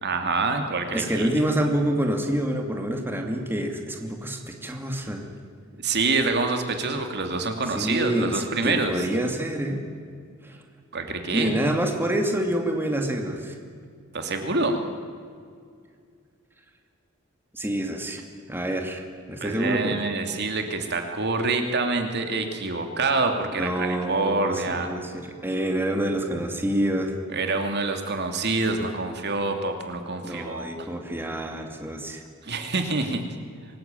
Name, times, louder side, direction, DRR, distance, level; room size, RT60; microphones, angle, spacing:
voice 1, 0.0-1.3 5.8-8.9 10.9-11.5 14.1-14.8 19.4-24.9 27.3-30.9 32.4-33.2, right 3 dB, 55° right, 5 dB, 2.7 m, -26 dB
voice 2, 0.9-5.2 7.7-9.9 10.4-10.6 11.3-13.6 17.5-18.2 18.5-20.0 23.5-27.2 30.2-32.2, right 1 dB, 10° right, 3 dB, 2.5 m, -27 dB
26.0 x 21.0 x 9.1 m, 2.2 s
head